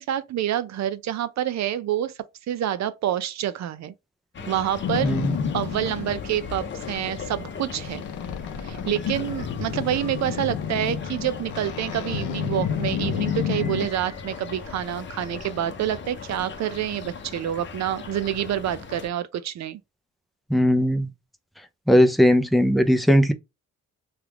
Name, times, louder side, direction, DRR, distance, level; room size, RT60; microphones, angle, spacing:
voice 1, 0.0-2.1 2.5-3.9 4.5-5.2 5.5-8.0 8.6-19.8, right 11 dB, 65° right, 0.5 m, -27 dB
sound 1, 4.3-19.1, left 5 dB, 40° left, 0.7 m, -38 dB
Boat Water vehicle, 4.8-13.9, left 8 dB, 75° left, 0.6 m, -31 dB
voice 2, 5.0-5.3 20.5-21.1 21.9-23.3, equal, ahead, 0.4 m, -18 dB
3.3 x 2.3 x 2.9 m
cardioid pair, 90°, 30 cm